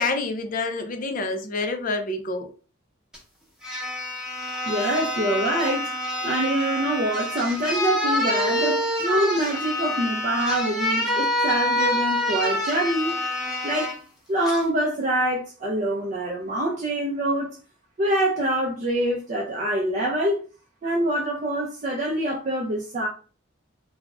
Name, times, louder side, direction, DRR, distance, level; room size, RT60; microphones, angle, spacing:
voice 1, 0.0-2.5, left 3 dB, 40° left, 0.4 m, -27 dB
sound 1, 3.1-3.2 3.6-14.0 14.5-14.6, left 1 dB, 5° right, 0.7 m, -26 dB
voice 2, 4.7-5.9 6.2-13.2 13.6-13.9 14.3-17.6 18.0-20.4 20.8-23.1, right 1 dB, 40° right, 0.4 m, -25 dB
2.4 x 2.0 x 3.4 m
head